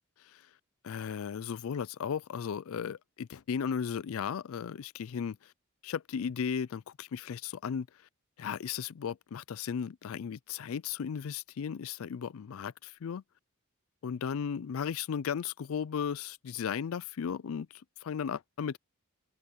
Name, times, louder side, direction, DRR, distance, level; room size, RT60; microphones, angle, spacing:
voice 1, 0.8-5.5 5.8-7.9 8.4-13.2 14.0-18.8, left 7 dB, 75° left, 0.4 m, -35 dB
open air
head